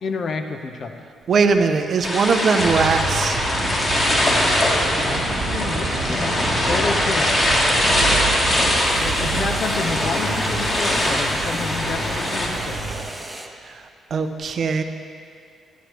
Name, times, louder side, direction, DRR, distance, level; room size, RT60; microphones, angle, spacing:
voice 1, 0.0-1.0 5.0-7.4 9.0-12.9, left 4 dB, 55° left, 6 dB, 0.6 m, -30 dB
voice 2, 1.3-3.4 13.6-13.8 14.1-14.8, right 5 dB, 55° right, 7 dB, 0.5 m, -20 dB
sound 1, 2.0-12.5, left 1 dB, 40° left, 1.8 m, -22 dB
sound 2, 2.6-13.0, right 3 dB, 75° right, 1.3 m, -29 dB
sound 3, 5.1-7.7 8.7-13.5, right 2 dB, 20° right, 0.8 m, -37 dB
10.5 x 10.0 x 3.0 m, 2.3 s
hypercardioid pair, 40°, 0 cm